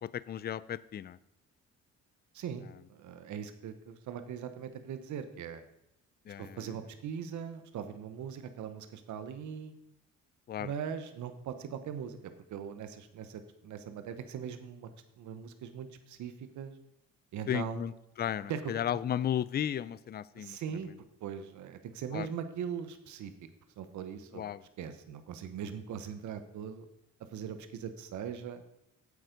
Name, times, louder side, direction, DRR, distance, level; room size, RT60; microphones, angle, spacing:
voice 1, 0.0-1.2 6.3-6.7 10.5-10.7 17.5-20.9 22.1-22.3 24.3-24.6, left 10 dB, 35° left, 18 dB, 0.4 m, -35 dB
voice 2, 2.3-5.6 6.4-9.7 10.6-12.2 12.5-14.9 15.2-16.7 17.3-17.8 18.5-18.7 20.4-20.9 21.2-23.3 23.8-24.4 24.8-26.9 27.3-28.6, right 8 dB, 75° right, 9 dB, 1.0 m, -40 dB
8.5 x 7.9 x 5.2 m, 0.82 s
cardioid pair, 90°, 30 cm